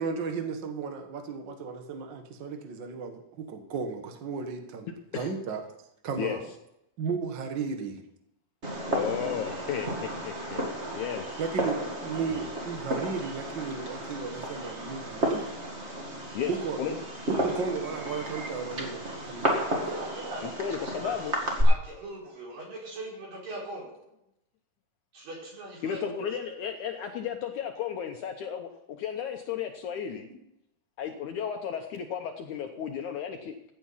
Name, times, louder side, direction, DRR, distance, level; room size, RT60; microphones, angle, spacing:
voice 1, 0.0-4.9 5.2-5.6 6.0-6.4 7.0-8.0 9.7-9.8 11.4-15.6 16.5-17.0 17.3-19.6, right 5 dB, 80° right, 5 dB, 1.0 m, -34 dB
Fireworks, 8.6-21.6, right 1 dB, 25° right, 1.7 m, -33 dB
voice 2, 8.9-10.6 10.9-11.4 12.3-12.5 16.3-16.5 16.8-16.9 17.4-17.5 20.4-21.3 25.8-30.3 31.0-33.6, left 8 dB, 70° left, 4 dB, 1.9 m, -34 dB
voice 3, 19.8-20.4 21.0-21.1 21.6-24.0 25.1-26.3, right 2 dB, 60° right, -3 dB, 6.6 m, -40 dB
15.5 x 9.0 x 5.7 m, 0.82 s
omnidirectional pair, 4.4 m